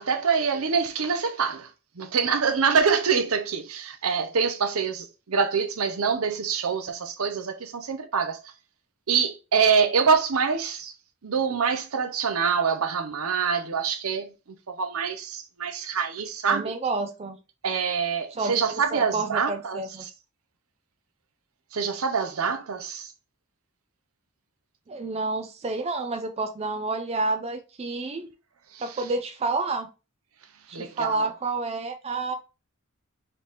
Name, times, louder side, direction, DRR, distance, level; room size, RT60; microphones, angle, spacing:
voice 1, 0.0-1.7 2.0-8.5 9.1-10.9 11.2-14.3 14.7-16.7 17.6-20.1 21.7-23.1 28.7-29.0 30.7-31.3, right 6 dB, 75° right, 0.7 m, -25 dB
voice 2, 16.5-17.4 18.3-20.0 24.9-28.3 28.8-29.9 30.7-32.3, right 3 dB, 30° right, 0.4 m, -29 dB
4.1 x 3.3 x 3.2 m
head